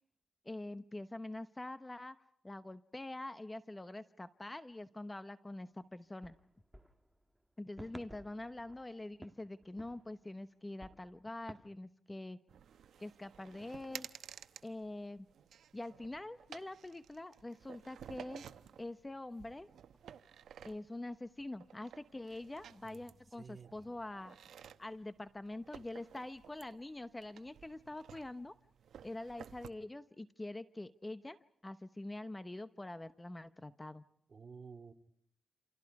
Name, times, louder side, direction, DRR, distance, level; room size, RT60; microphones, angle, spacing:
voice 1, 0.4-2.2 2.4-6.3 7.6-12.4 13.0-14.1 14.6-15.3 15.7-18.5 18.8-19.7 20.6-24.3 24.8-28.6 29.0-31.4 31.6-34.0, left 2 dB, 15° left, 12 dB, 0.9 m, -45 dB
sound 1, 6.2-10.4 10.8-11.7, right 1 dB, 10° right, 1.7 m, -56 dB
sound 2, 12.5-29.7, right 8 dB, 85° right, 0.9 m, -54 dB
voice 2, 23.4-23.9 34.3-34.9, right 5 dB, 45° right, 7 dB, 2.5 m, -52 dB
29.0 x 28.0 x 4.8 m, 0.67 s
cardioid pair, 95°, 0 cm